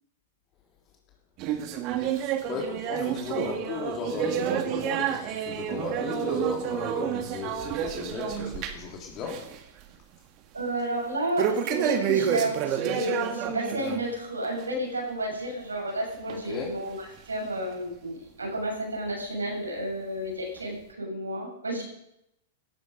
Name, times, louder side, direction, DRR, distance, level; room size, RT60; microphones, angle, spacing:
sound 1, 1.4-8.9 9.2-9.6 9.9-10.0 11.4-14.0 14.4-14.6 15.3-15.4 16.3-16.4 17.2-17.3, right 9 dB, 40° right, 2.1 m, -29 dB
voice 1, 2.5-9.5 16.3-16.8, left 5 dB, 35° left, 0 dB, 3.7 m, -36 dB
voice 2, 10.5-17.0 17.3-21.8, right 1 dB, 85° right, -1 dB, 7.6 m, -31 dB
17.0 x 13.5 x 5.4 m, 0.81 s
figure-of-eight pair, 105°, 0 cm